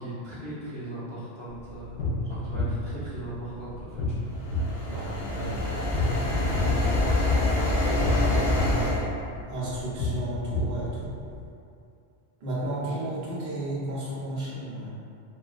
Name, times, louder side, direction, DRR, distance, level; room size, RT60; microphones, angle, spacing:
voice 1, 0.0-4.3 6.2-7.8 12.7-13.1, right 1 dB, 10° left, -13 dB, 0.5 m, -39 dB
sound 1, 1.5-11.4, left 1 dB, 80° left, 0.9 m, -32 dB
sound 2, 4.4-9.0, left 2 dB, 45° left, 0.7 m, -25 dB
voice 2, 4.9-5.7 8.7-8.9 9.5-11.1 12.4-14.9, right 1 dB, 65° right, -7 dB, 0.8 m, -33 dB
2.5 x 2.3 x 2.3 m, 2.5 s
omnidirectional pair, 1.2 m